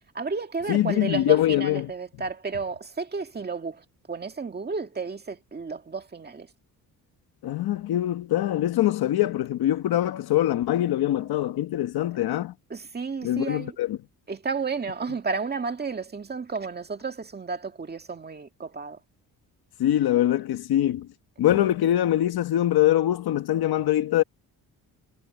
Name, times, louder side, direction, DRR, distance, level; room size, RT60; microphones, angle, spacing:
voice 1, 0.1-6.5 12.7-13.8 14.3-19.0 21.5-21.7, right 4 dB, 25° right, 2.1 m, -32 dB
voice 2, 0.7-1.9 7.4-12.5 13.2-14.0 19.8-21.1 21.4-24.2, left 13 dB, 85° left, 1.5 m, -23 dB
cardioid pair, 140°, 36 cm